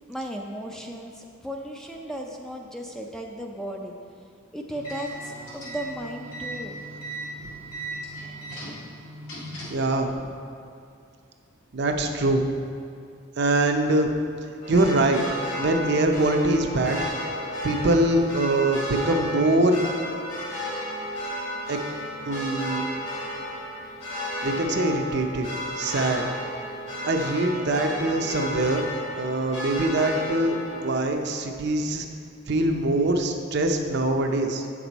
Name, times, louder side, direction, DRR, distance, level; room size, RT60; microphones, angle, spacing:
voice 1, 0.1-3.9 4.5-6.8, equal, ahead, 1 dB, 0.4 m, -35 dB
sound 1, 4.7-9.9, right 1 dB, 85° left, 2.0 m, -37 dB
voice 2, 9.7-10.3 11.7-12.5 13.4-14.1 14.7-15.2 15.6-17.0 17.6-19.8 21.7-21.8 22.3-22.8 24.4-25.5 25.8-26.2 27.1-32.1 32.5-34.6, right 2 dB, 55° right, 4 dB, 0.6 m, -23 dB
sound 2, 14.6-31.1, equal, 60° left, 2.0 m, -33 dB
8.3 x 6.1 x 4.0 m, 2.3 s
head